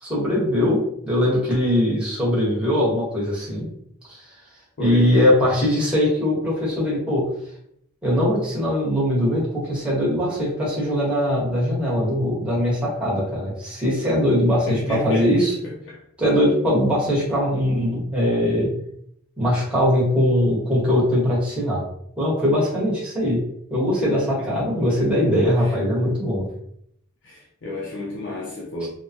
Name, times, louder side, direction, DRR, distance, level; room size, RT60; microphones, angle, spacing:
voice 1, 0.0-3.7 4.0-4.2 4.8-7.3 8.0-15.6 16.2-18.7 19.4-21.8 22.2-23.4 23.7-26.5, equal, 5° right, 1.1 m, -21 dB
voice 2, 4.8-5.3 14.6-16.0 24.4-24.6 25.5-25.8 27.2-28.9, left 2 dB, 55° left, 0.4 m, -32 dB
3.2 x 2.1 x 2.7 m
head